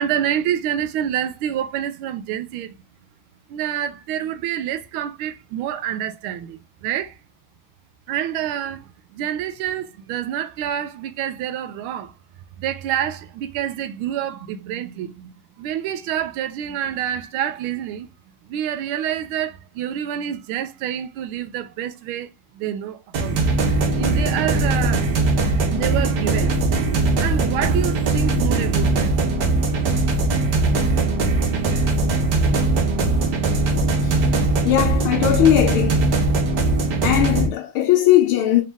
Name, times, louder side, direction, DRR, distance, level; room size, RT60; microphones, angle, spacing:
voice 1, 0.0-2.7 3.5-7.1 8.1-8.8 9.1-12.1 12.6-18.1 18.5-22.3 22.6-23.4 24.0-25.0 25.7-26.7 27.2-29.1, right 10 dB, 85° right, 1.4 m, -27 dB
sound 1, 23.1-37.5, right 2 dB, 60° right, 1.4 m, -20 dB
voice 2, 34.6-36.2 37.0-38.6, left 12 dB, 85° left, 1.5 m, -19 dB
4.2 x 2.8 x 3.4 m
omnidirectional pair, 2.3 m